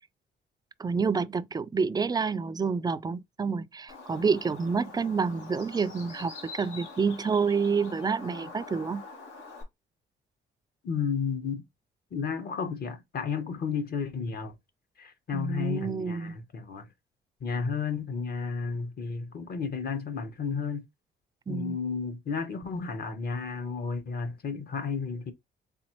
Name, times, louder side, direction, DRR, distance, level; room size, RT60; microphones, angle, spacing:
voice 1, 0.8-9.0 15.3-16.4 21.5-21.8, right 5 dB, 20° right, 0.3 m, -28 dB
Bird, 3.9-9.6, left 4 dB, 85° left, 1.9 m, -45 dB
voice 2, 10.8-11.6 12.1-14.5 15.0-16.9 17.4-20.8 21.5-25.3, left 5 dB, 50° left, 1.1 m, -32 dB
4.0 x 3.5 x 3.0 m
cardioid pair, 90°, 20 cm